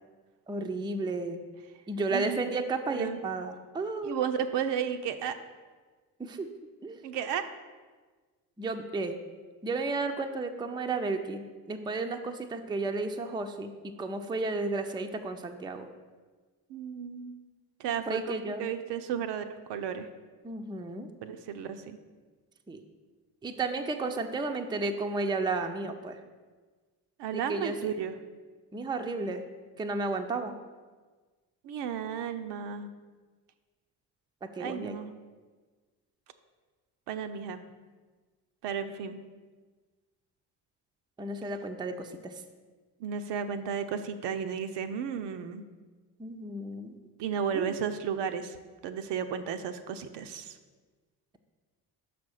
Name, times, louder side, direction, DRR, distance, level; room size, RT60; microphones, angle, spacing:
voice 1, 0.5-1.4 1.9-4.2 6.2-6.5 6.8-7.0 8.6-9.2 9.6-15.9 18.1-18.7 20.4-21.1 22.7-22.8 23.4-26.2 27.3-27.9 28.7-29.4 29.8-30.5 34.4-35.0 41.2-42.3 46.2-46.9 47.5-47.8, right 3 dB, 10° right, 5 dB, 0.5 m, -33 dB
voice 2, 2.1-2.6 2.9-3.2 4.0-5.4 7.0-7.5 16.7-17.3 17.8-20.1 21.2-22.0 27.2-28.2 31.6-32.9 34.6-35.1 37.1-37.6 38.6-39.2 43.0-45.7 47.2-48.6 48.8-50.6, right 7 dB, 55° right, 8 dB, 0.6 m, -33 dB
6.0 x 4.2 x 6.3 m, 1.4 s
hypercardioid pair, 40°, 49 cm